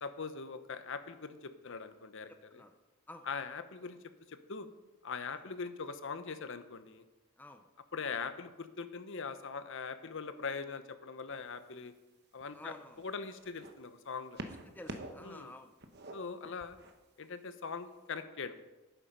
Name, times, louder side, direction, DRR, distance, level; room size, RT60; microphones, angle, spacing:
voice 1, 0.0-2.6 3.3-4.0 4.3-4.7 5.0-7.0 7.9-11.9 12.3-14.4 15.2-15.5 16.1-16.8 17.2-18.5, left 5 dB, 60° left, 11 dB, 0.8 m, -41 dB
voice 2, 2.3-2.8 3.1-3.3 5.3-5.4 7.4-7.7 12.5-13.0 14.4-15.8, left 1 dB, 10° left, 6 dB, 0.5 m, -52 dB
sound 1, 11.3-11.6 12.4-13.7 14.3-15.3 15.6-16.9 17.8-17.9, right 2 dB, 50° right, 1.1 m, -46 dB
11.5 x 9.1 x 5.3 m, 1.1 s
head